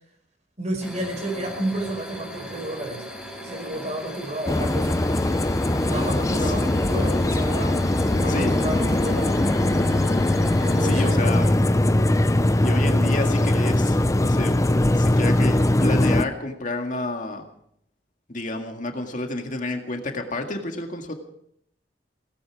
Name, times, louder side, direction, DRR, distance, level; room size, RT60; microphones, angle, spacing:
voice 1, 0.6-3.1 3.4-5.0 5.8-7.9 8.2-9.4 10.6-11.4, right 1 dB, 40° right, 4 dB, 5.1 m, -31 dB
sound 1, 0.8-11.1, equal, 5° right, 4.6 m, -38 dB
sound 2, 4.5-16.2, left 1 dB, 20° left, 0.6 m, -21 dB
voice 2, 10.8-11.5 12.6-14.0 14.2-14.6 15.0-17.4 18.3-21.1, left 2 dB, 45° left, 4 dB, 2.0 m, -29 dB
17.5 x 16.5 x 4.8 m, 0.70 s
head